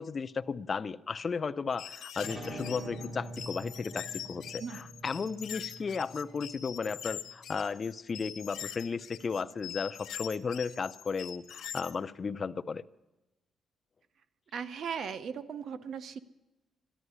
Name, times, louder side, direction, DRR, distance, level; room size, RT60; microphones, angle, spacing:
voice 1, 0.0-12.8, left 5 dB, 35° left, 0.5 m, -35 dB
sound 1, 1.7-11.9, left 10 dB, 85° left, 1.0 m, -43 dB
sound 2, 2.2-7.4, right 1 dB, 45° right, 5.4 m, -45 dB
voice 2, 14.5-16.2, right 7 dB, 60° right, 0.7 m, -37 dB
13.5 x 11.0 x 9.5 m
cardioid pair, 135°, 0 cm